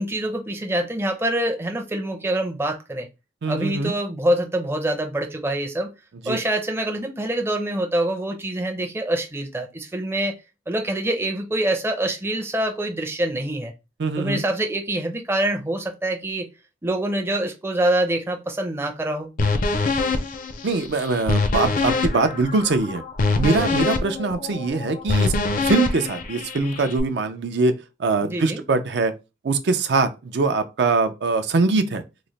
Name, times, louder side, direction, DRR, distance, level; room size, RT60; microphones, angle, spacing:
voice 1, 0.0-3.1 3.5-5.9 6.3-10.3 10.7-13.7 14.2-16.5 16.8-19.3 28.2-28.6, right 1 dB, 15° right, 0.5 m, -25 dB
voice 2, 3.4-3.9 6.3-6.4 14.0-14.4 20.6-23.0 23.4-25.3 25.6-27.7 28.0-29.1 29.4-32.0, right 3 dB, 65° right, 0.5 m, -22 dB
sound 1, 19.4-27.0, left 3 dB, 50° left, 0.5 m, -24 dB
3.0 x 2.1 x 3.9 m
head